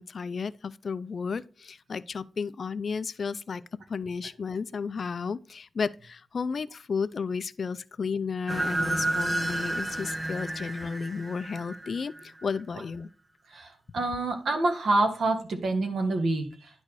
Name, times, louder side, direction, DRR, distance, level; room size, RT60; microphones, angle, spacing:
voice 1, 0.0-3.6 3.9-13.1, left 5 dB, 55° left, 0.4 m, -33 dB
sound 1, 8.5-12.4, right 2 dB, 15° right, 0.4 m, -31 dB
voice 2, 13.5-16.7, right 2 dB, 75° right, 1.6 m, -27 dB
10.5 x 4.2 x 4.7 m
wide cardioid pair, 145°, 0 cm